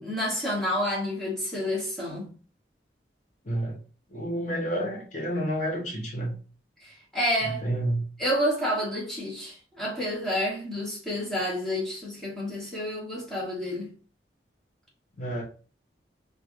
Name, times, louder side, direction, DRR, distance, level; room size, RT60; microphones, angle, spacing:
voice 1, 0.0-2.3 6.8-7.6 8.2-13.9, equal, 5° left, 1.3 m, -29 dB
voice 2, 3.4-3.8 4.1-6.4 7.4-8.1 15.2-15.4, right 1 dB, 45° left, 1.0 m, -29 dB
4.5 x 2.5 x 2.6 m
head